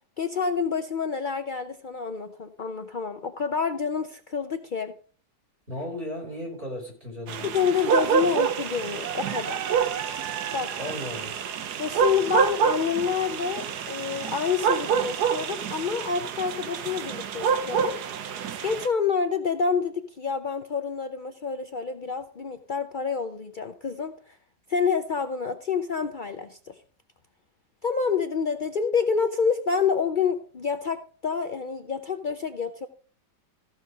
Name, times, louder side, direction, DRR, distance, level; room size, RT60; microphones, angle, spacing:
voice 1, 0.2-4.9 7.4-9.6 10.5-10.7 11.8-18.0 18.6-24.4 24.7-26.8 27.8-32.9, left 6 dB, 75° left, 0.4 m, -28 dB
voice 2, 5.7-7.5 10.8-11.3, left 1 dB, 30° right, 4.6 m, -35 dB
sound 1, 7.3-18.9, right 7 dB, 70° right, 1.4 m, -27 dB
15.0 x 6.2 x 5.1 m
omnidirectional pair, 1.9 m